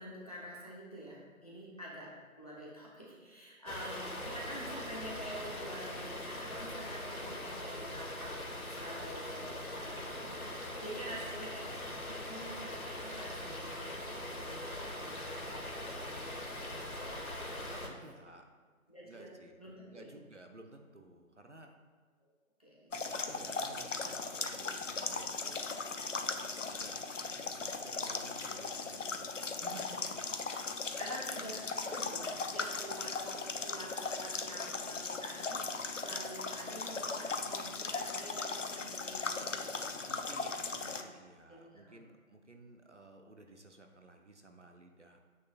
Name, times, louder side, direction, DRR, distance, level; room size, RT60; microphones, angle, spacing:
voice 1, 0.0-8.3 8.7-11.7 12.0-16.4 17.6-18.0 18.9-19.3 19.6-20.1 22.6-22.9 30.2-30.4 31.0-39.8 40.7-41.1 41.5-42.0, right 1 dB, 25° left, -5 dB, 1.1 m, -48 dB
sound 1, 3.7-17.9, left 1 dB, 85° left, 1.4 m, -41 dB
voice 2, 17.6-18.4 19.0-19.6 19.9-21.7 23.1-25.6 26.7-27.0 27.4-30.0 40.1-45.2, right 2 dB, 55° right, 4 dB, 0.7 m, -54 dB
sound 2, 22.9-41.0, left 4 dB, 60° left, 0.6 m, -38 dB
8.8 x 6.4 x 2.4 m, 1.5 s
figure-of-eight pair, 170°, 42 cm